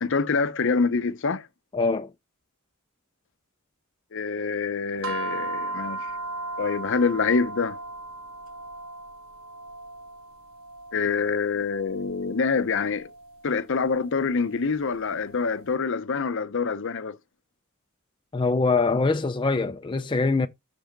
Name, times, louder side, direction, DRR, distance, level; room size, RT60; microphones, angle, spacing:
voice 1, 0.0-1.5 4.1-6.1 6.6-7.8 10.9-13.1 13.4-17.2, left 5 dB, 60° left, 0.7 m, -26 dB
voice 2, 1.7-2.1 18.3-20.5, left 3 dB, 25° left, 0.5 m, -23 dB
sound 1, 5.0-15.5, right 2 dB, 70° right, 1.0 m, -37 dB
6.2 x 5.0 x 5.2 m
head